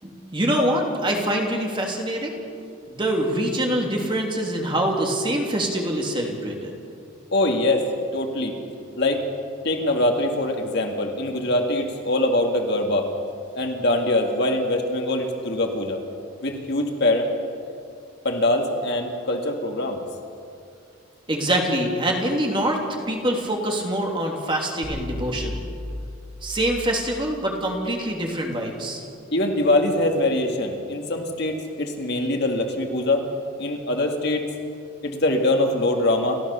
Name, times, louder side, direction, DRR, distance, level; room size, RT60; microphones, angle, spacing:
voice 1, 0.0-2.4 2.9-6.7 21.3-22.8 23.1-25.6 26.4-29.0, right 1 dB, 25° right, 0 dB, 3.0 m, -24 dB
voice 2, 7.3-7.8 8.1-8.6 9.0-9.2 9.6-13.1 13.6-16.0 16.4-17.3 18.2-20.0 29.3-33.2 33.6-34.5 35.0-36.4, left 1 dB, 55° left, 3 dB, 2.3 m, -23 dB
sound 1, 24.8-27.1, left 1 dB, 55° right, 6.8 m, -34 dB
30.0 x 14.0 x 7.0 m, 2.4 s
head